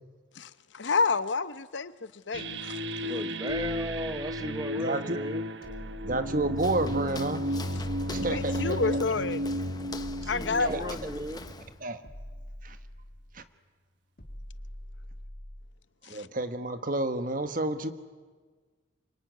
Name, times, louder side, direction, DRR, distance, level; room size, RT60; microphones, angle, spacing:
voice 1, 0.8-1.9 2.3-2.6 8.2-9.4 10.3-11.1, left 4 dB, 65° left, 0.9 m, -28 dB
sound 1, 2.3-11.7, equal, 65° right, 1.3 m, -34 dB
voice 2, 3.0-5.4 10.2-11.4, right 1 dB, 20° right, 1.0 m, -36 dB
sound 2, 3.5-4.8 5.6-7.2 7.7-9.2 9.9-11.5 12.0-13.4 14.2-15.8, equal, 50° left, 3.0 m, -44 dB
voice 3, 4.7-5.2 6.0-7.4 8.1-9.1 10.7-10.8 11.8-12.0 12.6-12.8 13.3-13.4 16.1-17.9, right 2 dB, 45° right, 1.5 m, -30 dB
Walk footsteps, 6.5-11.8, left 3 dB, 20° left, 0.9 m, -44 dB
26.0 x 24.5 x 9.5 m
head